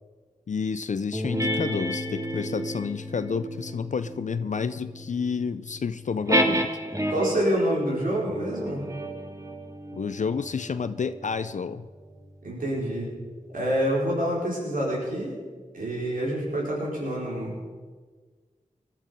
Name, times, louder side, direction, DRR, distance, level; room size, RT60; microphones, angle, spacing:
voice 1, 0.5-6.7 9.9-11.9, left 5 dB, 60° left, 13 dB, 0.5 m, -30 dB
sound 1, 1.1-7.5 8.3-13.2, equal, 25° right, 2.0 m, -32 dB
voice 2, 7.1-8.8 12.4-13.1 13.5-15.3 15.7-17.7, right 1 dB, 85° right, -4 dB, 5.0 m, -27 dB
19.0 x 12.0 x 5.3 m, 1.5 s
cardioid pair, 40°, 14 cm